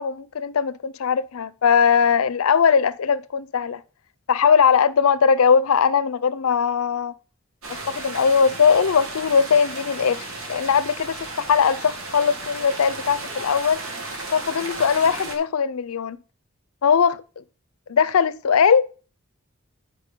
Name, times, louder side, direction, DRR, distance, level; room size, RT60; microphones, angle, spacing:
voice 1, 0.0-3.8 4.3-7.1 7.7-11.2 11.5-13.8 14.3-16.2 16.8-17.4 17.9-18.9, left 6 dB, 85° left, 0.5 m, -20 dB
sound 1, 7.6-15.4, right 2 dB, 75° right, 1.8 m, -34 dB
9.8 x 4.8 x 5.1 m
head